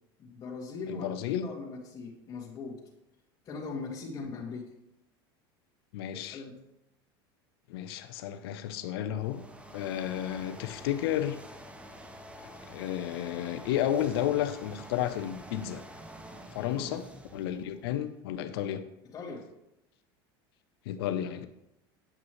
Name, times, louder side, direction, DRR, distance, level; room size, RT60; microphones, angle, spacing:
voice 1, 0.2-2.8 3.4-4.7 6.3-6.6 16.6-17.1 19.0-19.5, left 4 dB, 35° left, -9 dB, 2.1 m, -40 dB
voice 2, 0.9-1.5 5.9-6.4 7.7-9.4 9.7-11.4 12.7-15.8 16.5-17.1 17.3-18.9 20.9-21.5, left 11 dB, 75° left, 10 dB, 0.7 m, -32 dB
sound 1, 9.0-18.2, equal, 10° right, 0.8 m, -48 dB
9.3 x 6.0 x 3.2 m, 0.86 s
hypercardioid pair, 95°, 13 cm